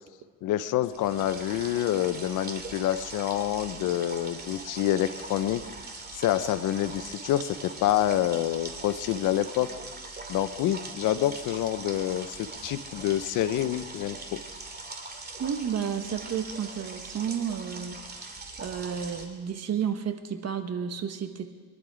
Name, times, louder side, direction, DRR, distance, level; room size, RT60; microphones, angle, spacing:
voice 1, 0.4-5.6 6.1-9.7 10.3-14.4, left 12 dB, 90° left, 13 dB, 0.7 m, -27 dB
sound 1, 0.9-19.3, right 3 dB, 30° right, 2.5 m, -41 dB
voice 2, 15.4-21.5, right 8 dB, 55° right, 7 dB, 1.4 m, -32 dB
24.0 x 11.0 x 5.0 m, 1.5 s
cardioid pair, 90°, 30 cm